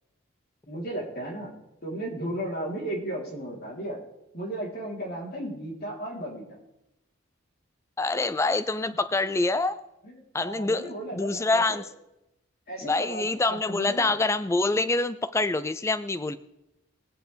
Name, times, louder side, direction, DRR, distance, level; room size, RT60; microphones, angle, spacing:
voice 1, 0.7-1.5 1.8-4.0 4.3-6.6 10.0-10.1 10.4-11.8 12.7-14.1, right 1 dB, 50° left, -2 dB, 3.3 m, -35 dB
voice 2, 8.0-9.8 10.3-10.9 11.1-11.8 12.8-16.3, left 3 dB, 15° left, 11 dB, 0.4 m, -26 dB
21.0 x 8.1 x 3.3 m, 0.87 s
head